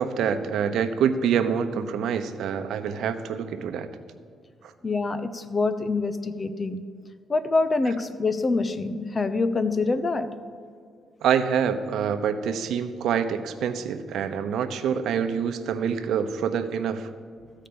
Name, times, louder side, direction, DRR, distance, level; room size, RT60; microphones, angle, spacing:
voice 1, 0.0-3.9 11.2-17.1, right 7 dB, 75° right, 10 dB, 0.8 m, -26 dB
voice 2, 4.8-6.8 7.3-10.3, left 3 dB, 30° left, 11 dB, 0.8 m, -25 dB
14.0 x 5.0 x 8.6 m, 2.1 s
cardioid pair, 90°, 0 cm